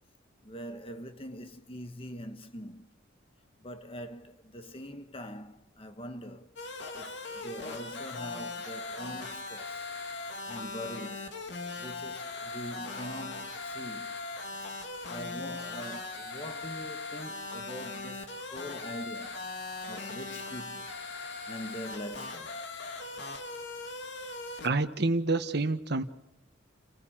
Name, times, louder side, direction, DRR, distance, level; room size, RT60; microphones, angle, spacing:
voice 1, 0.4-2.9 3.6-6.5 6.9-9.9 10.5-11.3 11.8-14.2 15.1-19.4 19.9-20.9 21.5-22.6, equal, 30° left, 1.4 m, -43 dB
sound 1, 6.6-24.7, left 3 dB, 65° left, 2.5 m, -39 dB
voice 2, 24.6-26.0, right 3 dB, 60° right, 1.4 m, -28 dB
30.0 x 15.0 x 7.4 m
head